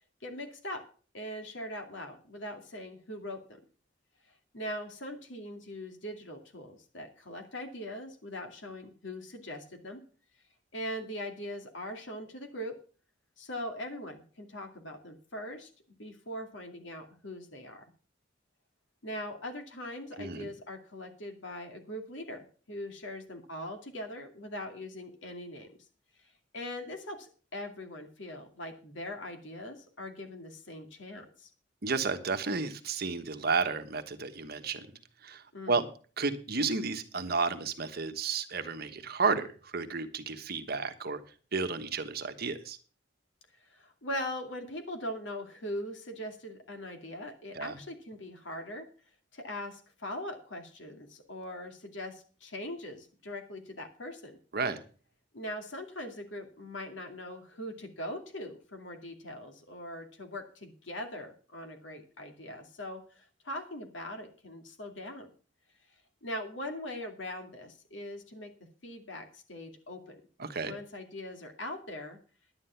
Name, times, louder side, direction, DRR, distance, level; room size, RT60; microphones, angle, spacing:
voice 1, 0.2-0.8 1.1-3.6 4.5-10.0 10.7-12.8 13.4-15.7 16.0-17.8 19.0-25.9 26.5-31.5 35.5-35.8 43.6-48.9 49.3-54.4 55.3-65.3 66.2-68.5 68.8-70.2 70.6-72.2, left 1 dB, 75° left, 5 dB, 2.4 m, -41 dB
voice 2, 20.2-20.5 31.8-34.9 35.2-35.8 36.2-41.2 41.5-42.8 47.5-47.7 54.5-54.8 70.4-70.7, right 4 dB, 55° right, 9 dB, 1.2 m, -32 dB
10.5 x 9.8 x 5.7 m, 0.39 s
head